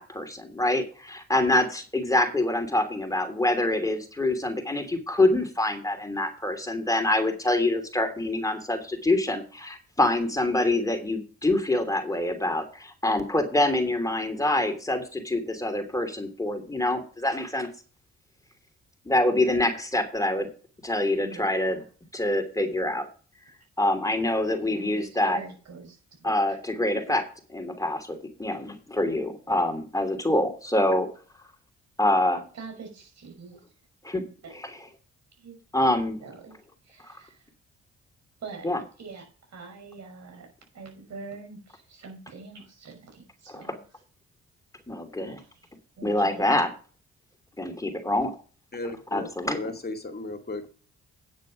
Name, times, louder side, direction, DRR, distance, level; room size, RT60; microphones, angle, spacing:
voice 1, 0.0-17.7 19.0-20.5 20.8-21.8 22.1-23.1 23.8-25.4 26.2-27.2 27.5-31.1 32.0-32.4 34.0-34.2 34.5-34.7 35.7-36.2 37.1-37.2 38.6-38.8 43.5-43.7 44.9-45.4 46.0-46.7 47.6-48.3 49.1-49.7, left 1 dB, 10° left, 5 dB, 2.9 m, -25 dB
voice 2, 21.2-21.9 24.6-26.8 27.1-27.2 32.5-33.6 34.4-34.5 35.3-35.6 36.2-36.6 36.8-37.4 38.4-38.7 39.0-39.2 39.5-40.5 40.7-43.8 45.2-45.5 46.0-46.6, right 4 dB, 65° right, 3 dB, 5.7 m, -44 dB
voice 3, 48.7-49.3 49.5-50.7, left 2 dB, 35° left, 5 dB, 2.4 m, -35 dB
9.5 x 7.6 x 5.2 m, 0.38 s
supercardioid pair, 60°, 29 cm